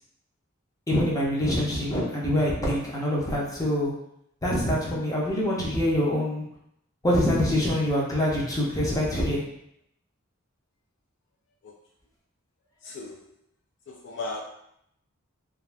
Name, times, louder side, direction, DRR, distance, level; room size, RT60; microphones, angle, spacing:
voice 1, 0.9-3.9 4.4-6.4 7.0-9.4, left 1 dB, 15° left, -5 dB, 0.6 m, -25 dB
voice 2, 12.8-13.2 13.9-14.4, left 2 dB, 55° left, 0 dB, 0.3 m, -36 dB
2.5 x 2.4 x 3.2 m, 0.75 s
head